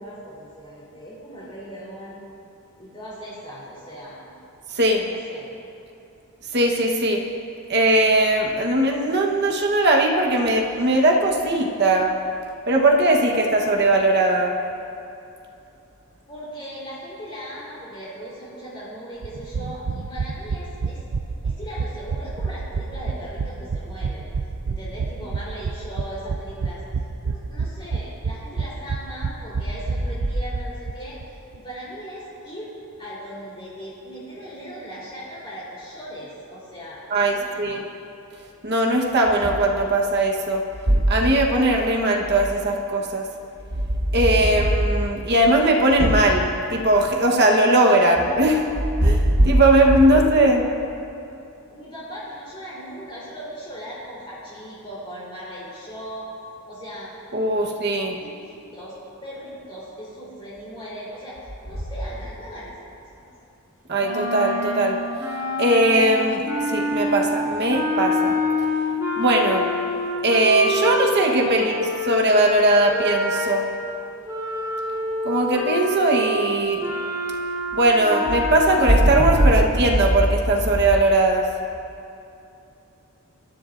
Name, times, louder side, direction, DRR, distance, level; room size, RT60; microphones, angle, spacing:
voice 1, 0.0-2.2 2.8-4.3 5.0-5.5 16.3-21.0 21.4-24.3 24.6-26.8 27.2-31.2 31.5-32.7 33.0-37.8 50.1-50.3 51.7-56.3 56.6-57.1 57.6-57.7 58.2-58.9 59.2-62.8 63.1-63.2 71.4-71.7, equal, 25° left, -9 dB, 3.8 m, -38 dB
voice 2, 4.7-5.0 6.5-7.2 7.7-12.1 12.7-14.5 37.1-37.8 38.6-43.2 44.1-48.6 49.0-50.7 57.3-58.2 63.9-65.0 65.6-66.4 66.7-68.3 69.2-69.6 70.2-71.7 72.1-73.7 75.2-76.8 77.7-81.4, right 1 dB, 50° right, 0 dB, 1.2 m, -19 dB
sound 1, 19.2-30.9 31.2-31.3 31.5-31.6, right 4 dB, 70° right, 0.5 m, -29 dB
sound 2, 64.0-73.8 74.2-79.5, left 1 dB, 15° right, 3.9 m, -27 dB
25.0 x 13.5 x 2.6 m, 2.8 s
head